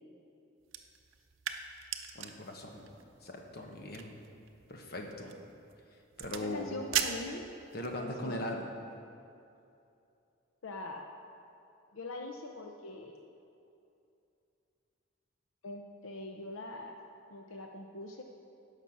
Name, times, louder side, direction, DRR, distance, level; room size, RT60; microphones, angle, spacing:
sound 1, 0.6-8.0, right 9 dB, 80° right, 0.7 m, -41 dB
voice 1, 2.1-2.9 3.2-4.1 4.7-5.3 6.2-6.7 7.7-8.7, left 1 dB, 50° left, 1 dB, 1.3 m, -40 dB
voice 2, 6.4-7.5 8.0-8.5 10.6-11.1 11.9-13.2 15.6-17.0 17.3-18.2, left 2 dB, 85° left, 3 dB, 0.7 m, -42 dB
17.0 x 5.8 x 6.0 m, 2.6 s
head